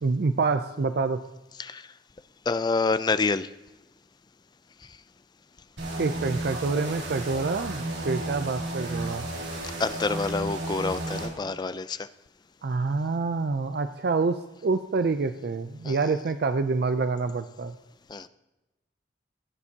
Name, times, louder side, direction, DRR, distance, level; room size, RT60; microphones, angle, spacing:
voice 1, 0.0-1.2 6.0-9.3 12.6-17.7, right 4 dB, 60° right, 10 dB, 0.4 m, -27 dB
voice 2, 2.5-3.5 9.6-12.1 15.8-16.0 18.1-18.3, left 4 dB, 25° left, 14 dB, 0.4 m, -27 dB
sound 1, 5.8-11.3, right 1 dB, 75° right, 2.6 m, -33 dB
16.0 x 9.6 x 2.8 m, 1.0 s
head